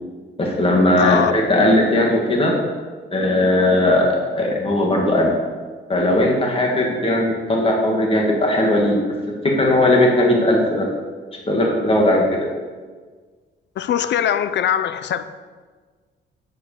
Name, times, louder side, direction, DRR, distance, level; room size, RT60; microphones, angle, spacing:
voice 1, 0.4-2.5 3.1-5.3 5.9-9.0 9.3-10.9 11.5-12.5, left 1 dB, 30° left, -1 dB, 2.4 m, -18 dB
voice 2, 1.0-1.3 13.8-15.2, left 10 dB, 65° left, 12 dB, 0.8 m, -21 dB
8.4 x 8.4 x 6.9 m, 1.5 s
cardioid pair, 90°, 20 cm